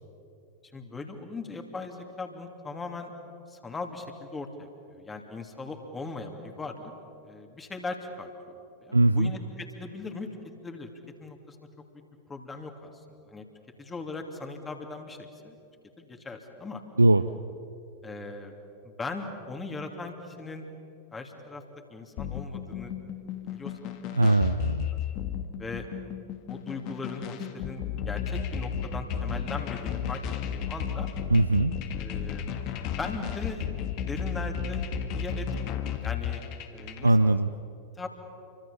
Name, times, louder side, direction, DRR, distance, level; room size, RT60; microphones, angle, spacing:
voice 1, 0.7-3.1 3.5-6.9 7.2-10.3 10.6-10.9 11.2-11.6 12.3-13.4 13.8-15.6 16.0-16.8 18.0-18.5 18.8-20.7 21.1-21.6 21.9-22.9 23.5-24.4 25.6-25.9 26.5-30.2 30.5-31.1 32.0-32.5 33.0-33.7 34.1-36.4 36.7-37.4 38.0-38.1, left 3 dB, 15° left, 4 dB, 3.0 m, -39 dB
voice 2, 8.9-9.3 17.0-17.3 24.1-24.9 31.3-31.7 37.0-37.5, right 2 dB, 80° right, 13 dB, 0.6 m, -21 dB
sound 1, 22.2-37.1, left 8 dB, 40° left, 2.0 m, -33 dB
29.5 x 24.5 x 7.3 m, 2.8 s
figure-of-eight pair, 90°, 0 cm